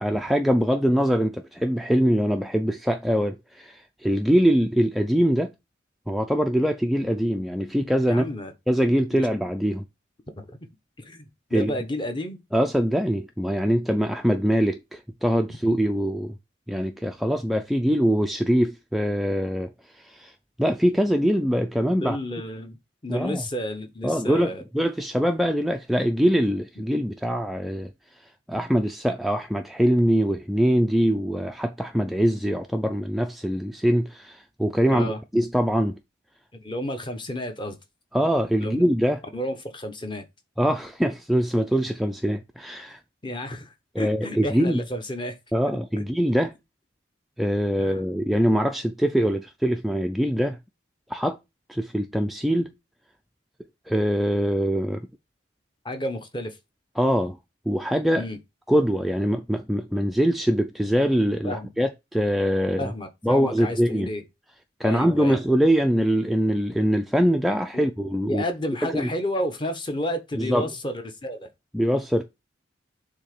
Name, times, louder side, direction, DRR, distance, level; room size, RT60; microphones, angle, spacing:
voice 1, 0.0-5.5 6.1-8.3 8.7-9.9 11.5-11.7 12.5-16.4 16.7-20.3 20.6-22.2 23.1-23.4 24.0-27.9 28.5-36.0 38.1-39.2 40.6-43.0 44.0-44.8 45.5-46.5 47.4-50.6 51.1-51.4 51.7-52.7 53.9-55.1 57.0-57.4 57.7-58.3 58.7-62.9 63.2-64.1 64.8-68.4 68.8-69.1 70.4-70.7 71.7-72.2, equal, ahead, 0.3 m, -23 dB
voice 2, 8.1-8.5 9.1-9.2 10.4-10.5 11.0-11.2 11.5-12.4 22.0-22.8 23.0-24.6 34.9-35.2 36.6-37.8 38.6-38.8 39.3-40.3 43.2-45.4 46.0-46.1 47.8-48.0 55.8-56.6 58.1-58.4 61.4-61.7 62.8-64.2 64.8-65.4 67.7-67.9 68.3-71.5, left 1 dB, 25° left, 0.9 m, -31 dB
7.0 x 2.8 x 5.1 m
head